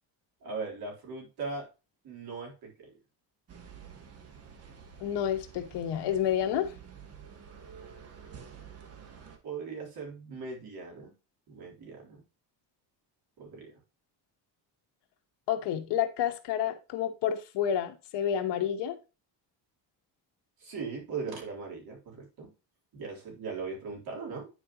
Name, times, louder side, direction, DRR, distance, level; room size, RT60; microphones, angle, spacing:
voice 1, 0.4-1.7 2.0-2.9 9.4-11.1 11.5-12.2 13.4-13.7 20.6-22.5 22.9-24.5, right 4 dB, 60° right, 3.7 m, -39 dB
sound 1, 3.5-9.4, right 7 dB, 35° right, 1.2 m, -49 dB
voice 2, 5.0-6.7 15.5-19.0, left 9 dB, 75° left, 1.4 m, -29 dB
9.8 x 4.8 x 3.0 m
cardioid pair, 145°, 42 cm